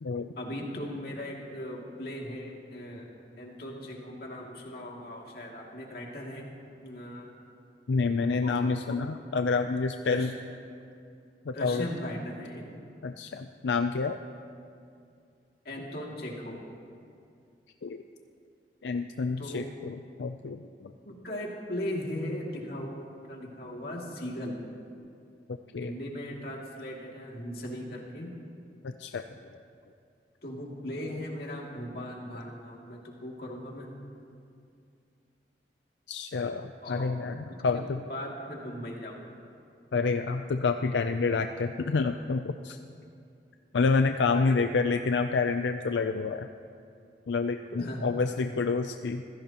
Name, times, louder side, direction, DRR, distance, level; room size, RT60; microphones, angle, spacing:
voice 1, 0.4-3.1 3.4-6.5 6.8-7.3 8.4-8.7 10.0-10.3 11.5-12.6 15.6-16.6 19.4-19.6 21.0-24.6 25.8-28.3 30.4-33.9 36.8-37.1 37.7-39.2 44.3-44.6 47.7-48.1, left 1 dB, 60° left, -2 dB, 2.5 m, -38 dB
voice 2, 7.9-10.3 11.5-11.9 13.0-14.2 17.8-18.0 18.8-20.9 25.7-25.9 28.8-29.2 36.1-38.0 39.9-42.8 43.7-46.5 47.3-49.2, left 4 dB, 90° left, 7 dB, 0.5 m, -28 dB
25.5 x 16.0 x 3.0 m, 2.4 s
head